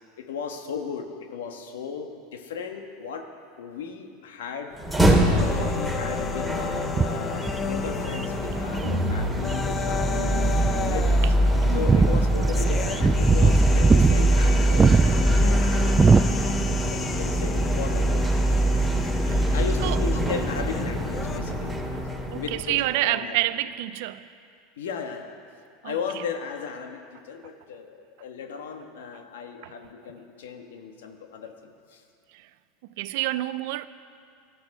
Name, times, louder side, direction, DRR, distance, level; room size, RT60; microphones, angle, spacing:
voice 1, 0.2-3.3 3.6-4.7 5.2-10.2 10.6-11.3 11.7-15.9 16.9-18.4 19.5-21.8 22.3-23.4 24.8-25.3 25.8-32.0, left 6 dB, 85° left, 1.4 m, -36 dB
sound 1, 4.7-22.9, right 1 dB, ahead, 2.4 m, -23 dB
sound 2, 5.4-21.4, left 6 dB, 30° left, 0.8 m, -34 dB
sound 3, 6.7-8.9 9.5-10.3 10.6-10.7 11.0-11.1 11.5-16.8 17.1-17.3 18.8-18.9, right 5 dB, 20° right, 0.4 m, -21 dB
voice 2, 8.8-9.3 11.7-12.1 19.3-19.6 19.8-20.0 22.3-24.2 25.8-26.0 29.6-29.7 32.3-32.5 33.0-33.9, right 16 dB, 70° right, 0.5 m, -28 dB
18.0 x 12.5 x 4.9 m
hypercardioid pair, 100°, 0 cm